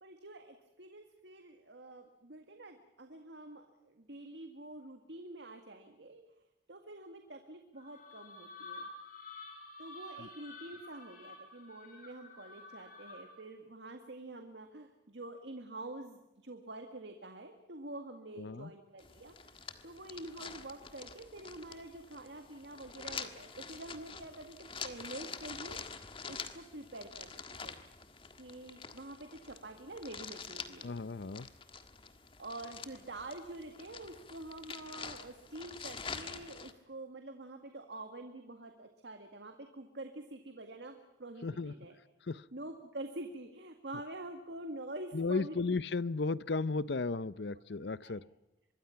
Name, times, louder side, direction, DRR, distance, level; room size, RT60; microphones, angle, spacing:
voice 1, 0.0-6.2 6.7-8.9 9.8-25.8 26.0-27.7 28.4-30.9 32.0-32.1 32.4-42.0 42.5-45.6 48.0-48.2, right 2 dB, 75° right, 5 dB, 1.9 m, -47 dB
sound 1, 7.8-13.5, left 2 dB, 50° left, 6.5 m, -50 dB
voice 2, 18.4-18.7 30.8-31.5 41.4-41.7 42.3-42.4 45.1-48.2, left 3 dB, 70° left, 18 dB, 0.7 m, -34 dB
sound 2, 19.0-36.7, left 5 dB, 30° left, 1.5 m, -47 dB
25.0 x 22.0 x 5.8 m, 0.98 s
head